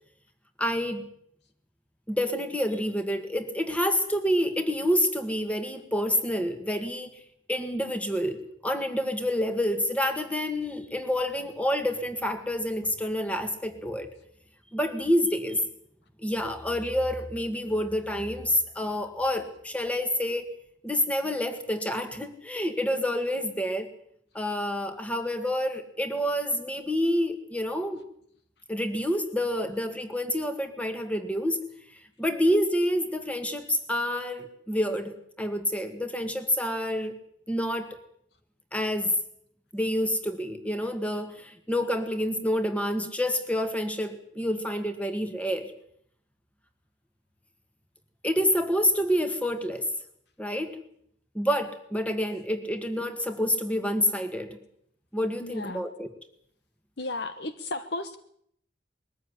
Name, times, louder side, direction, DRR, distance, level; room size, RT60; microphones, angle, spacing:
voice 1, 0.6-1.1 2.1-7.1 7.5-14.1 14.7-15.6 16.2-20.5 20.8-23.9 24.3-28.0 28.7-31.6 32.2-37.2 37.5-38.0 38.7-39.1 39.7-45.7 48.2-49.9 50.4-50.8 51.3-54.6 55.1-56.1, equal, 5° left, 8 dB, 1.8 m, -28 dB
voice 2, 55.4-55.9 57.0-58.2, left 2 dB, 55° left, 10 dB, 1.0 m, -34 dB
21.5 x 14.0 x 9.7 m, 0.69 s
head